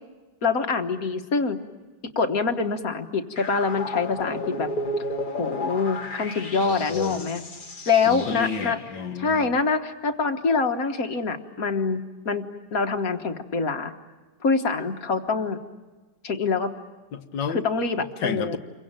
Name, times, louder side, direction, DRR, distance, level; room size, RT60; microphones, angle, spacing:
voice 1, 0.4-1.6 2.2-4.7 5.4-7.4 7.9-8.8 9.2-12.5 12.7-13.9 14.4-15.6 16.2-16.7 17.5-18.6, left 4 dB, 50° left, 6 dB, 1.8 m, -25 dB
sound 1, 3.4-9.1, left 1 dB, 30° left, 1.4 m, -33 dB
voice 2, 6.6-7.3 8.1-9.5 17.1-17.6 18.2-18.6, left 7 dB, 80° left, 7 dB, 1.8 m, -31 dB
28.5 x 23.5 x 8.9 m, 1.3 s
omnidirectional pair, 1.9 m